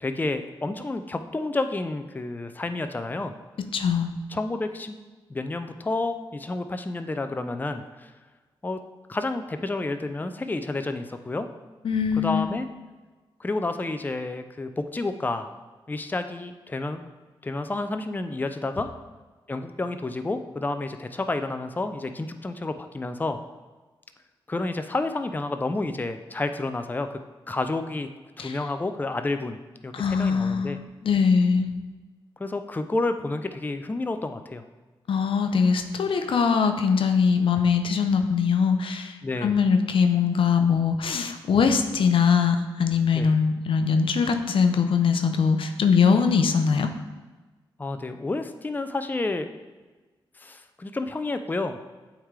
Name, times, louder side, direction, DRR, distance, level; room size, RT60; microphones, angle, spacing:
voice 1, 0.0-3.3 4.3-5.0 5.3-8.1 8.6-8.8 9.1-11.5 12.1-12.7 13.4-15.5 15.9-17.1 17.4-18.9 19.5-23.4 24.5-27.2 27.5-28.1 28.4-29.6 29.8-30.8 32.4-34.6 39.2-39.6 43.1-43.3 47.8-49.5 50.4-51.8, left 2 dB, 20° left, 8 dB, 0.5 m, -30 dB
voice 2, 3.6-4.1 11.8-12.5 28.4-28.6 29.9-31.7 35.1-46.9, left 6 dB, 65° left, 7 dB, 0.5 m, -22 dB
8.5 x 3.7 x 3.2 m, 1.2 s
cardioid pair, 55°, 9 cm